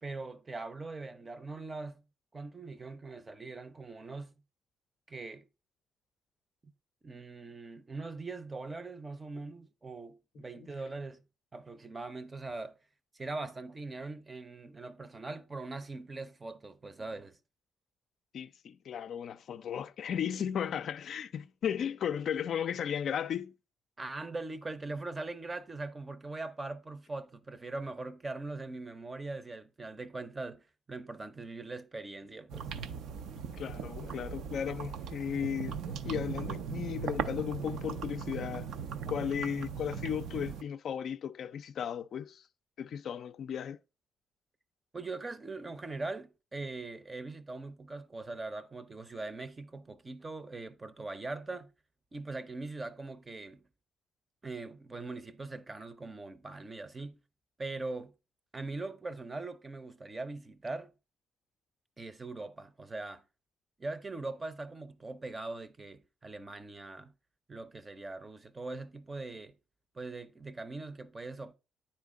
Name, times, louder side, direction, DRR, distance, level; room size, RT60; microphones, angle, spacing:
voice 1, 0.0-2.0 2.3-4.4 5.1-5.5 7.0-11.2 11.5-12.8 13.1-17.4 24.0-32.7 44.9-51.7 52.1-53.6 54.4-57.2 57.6-58.1 58.5-60.9 62.0-63.2 63.8-67.1 67.5-69.6 69.9-71.5, right 3 dB, 25° right, 0.6 m, -41 dB
voice 2, 18.3-23.5 33.3-38.7 39.1-42.4 42.8-43.8, left 8 dB, 65° left, 0.3 m, -35 dB
sound 1, 32.5-40.6, right 7 dB, 80° right, 0.5 m, -39 dB
9.3 x 4.3 x 3.5 m
cardioid pair, 90°, 0 cm